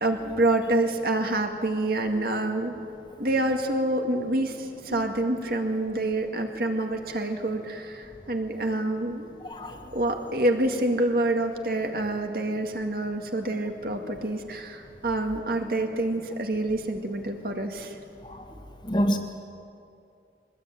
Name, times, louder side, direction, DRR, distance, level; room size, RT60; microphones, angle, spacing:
voice 1, 0.0-2.7 3.2-9.3 9.9-17.9, right 1 dB, 55° right, 4 dB, 2.1 m, -27 dB
voice 2, 9.4-9.8 18.2-18.5 18.8-19.2, equal, 25° left, 4 dB, 1.8 m, -27 dB
23.0 x 20.0 x 9.0 m, 2.5 s
head